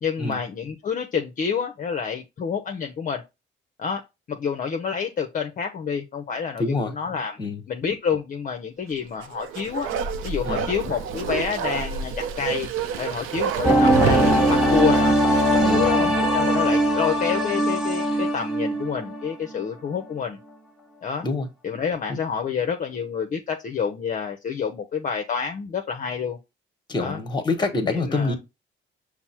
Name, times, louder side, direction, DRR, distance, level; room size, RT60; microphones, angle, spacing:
voice 1, 0.0-3.2 3.8-4.0 4.3-7.4 7.7-9.9 10.2-12.7 13.0-15.2 15.5-20.4 21.0-21.2 21.6-26.4 27.0-27.2 27.9-28.4, left 6 dB, 40° left, 0.6 m, -28 dB
voice 2, 6.6-6.9 7.4-7.6 10.4-10.7 15.6-15.9 21.2-21.5 22.1-22.2 26.9-28.4, left 3 dB, 20° left, 1.2 m, -26 dB
Bark, 9.1-16.7 17.0-17.1, right 7 dB, 90° right, 0.6 m, -29 dB
sound 1, 13.6-19.3 19.6-19.7, equal, ahead, 1.0 m, -20 dB
5.8 x 2.0 x 4.3 m
cardioid pair, 90°, 20 cm